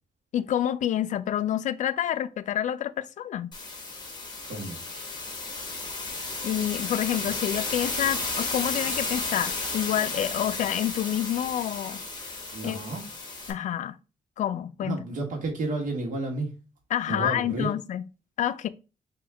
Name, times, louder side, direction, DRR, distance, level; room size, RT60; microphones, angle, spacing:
voice 1, 0.3-3.5 6.4-12.0 12.6-12.8 13.5-14.0 14.4-15.0 16.9-18.0 18.4-18.7, left 11 dB, 70° left, 0.4 m, -28 dB
sound 1, 3.5-13.5, left 3 dB, 35° left, 1.2 m, -33 dB
voice 2, 4.4-4.8 12.5-13.0 14.8-16.5 17.1-17.7, right 2 dB, 85° right, 1.6 m, -31 dB
3.5 x 3.0 x 4.7 m
wide cardioid pair, 155°, 13 cm